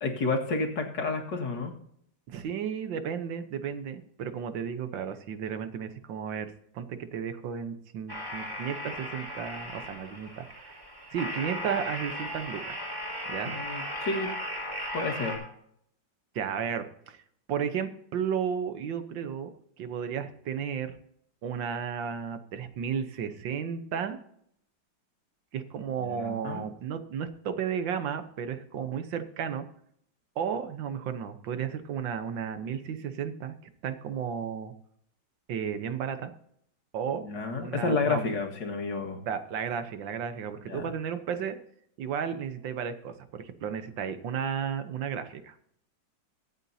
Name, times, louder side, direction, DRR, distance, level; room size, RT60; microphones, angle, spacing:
voice 1, 0.0-1.7 13.5-14.3 14.9-15.4 26.0-26.7 37.2-39.2 40.7-40.9, left 3 dB, 70° left, 2 dB, 2.4 m, -30 dB
voice 2, 2.3-10.8 11.1-12.8 13.3-13.5 16.4-17.2 17.5-19.5 19.8-21.0 21.4-24.2 25.5-29.7 30.4-33.6 33.8-34.7 35.5-36.3 36.9-37.2 37.6-38.3 39.3-41.6 42.0-45.5, right 7 dB, 80° right, 10 dB, 1.8 m, -33 dB
sound 1, 8.1-15.4, equal, 10° right, 4.3 m, -37 dB
23.5 x 8.2 x 2.8 m, 0.70 s
omnidirectional pair, 2.0 m